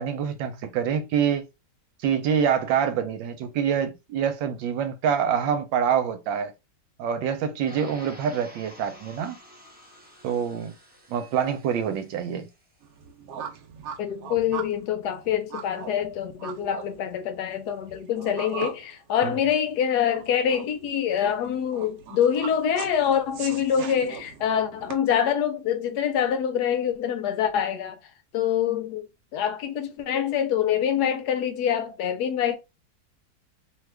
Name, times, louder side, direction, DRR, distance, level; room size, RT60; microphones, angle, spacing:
voice 1, 0.0-1.5 2.0-6.5 7.0-9.4 10.2-10.7 11.1-12.5 19.2-19.4, right 8 dB, 90° right, 1.4 m, -26 dB
sound 1, 7.7-12.7, left 1 dB, 15° right, 0.3 m, -50 dB
sound 2, 12.8-24.9, right 7 dB, 70° right, 0.9 m, -40 dB
voice 2, 14.0-28.0 28.3-32.6, left 9 dB, 75° left, 1.0 m, -25 dB
3.1 x 2.3 x 3.3 m
omnidirectional pair, 2.0 m